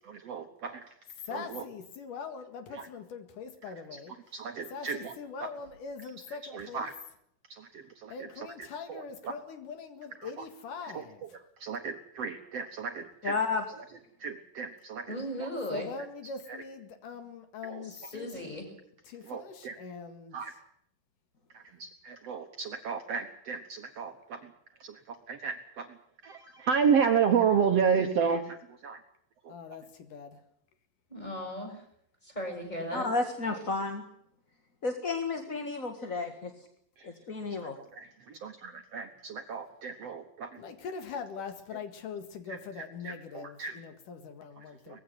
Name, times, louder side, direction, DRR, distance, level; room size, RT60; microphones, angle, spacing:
voice 1, 0.1-0.9 1.3-1.6 2.7-2.9 3.7-3.8 4.3-5.1 5.4-5.5 6.2-6.9 7.5-8.5 8.9-9.3 10.2-10.4 10.9-11.3 11.6-13.4 14.2-15.5 16.5-16.6 17.6-17.8 19.2-19.8 20.3-20.5 21.5-24.5 24.8-26.0 26.2-29.0 29.4-29.5 37.0-37.1 37.5-40.6 42.5-43.8 44.6-45.0, right 6 dB, 60° right, 6 dB, 2.0 m, -32 dB
voice 2, 1.3-4.2 4.7-6.9 8.1-11.2 15.7-18.5 19.0-20.4 29.5-30.4 40.6-45.0, left 5 dB, 75° left, 8 dB, 3.4 m, -42 dB
voice 3, 13.2-13.6 32.9-34.0 34.8-36.5 37.0-37.7, left 3 dB, 35° left, 5 dB, 1.6 m, -32 dB
voice 4, 15.1-15.9 17.8-18.7 31.1-31.8 32.2-33.1, equal, 10° left, 3 dB, 6.4 m, -37 dB
20.0 x 16.0 x 9.9 m, 0.72 s
omnidirectional pair, 3.8 m